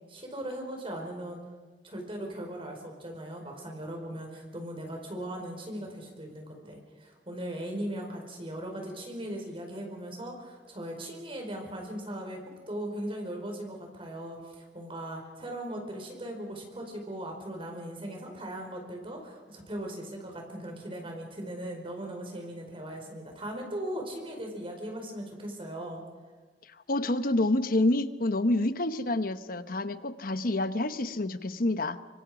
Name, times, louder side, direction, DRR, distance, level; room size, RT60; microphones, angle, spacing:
voice 1, 0.1-1.4 1.8-12.4 12.7-26.0, right 1 dB, 30° right, 2 dB, 4.9 m, -38 dB
voice 2, 26.9-32.0, left 2 dB, 55° left, 11 dB, 1.0 m, -28 dB
25.5 x 24.5 x 5.1 m, 1.4 s
head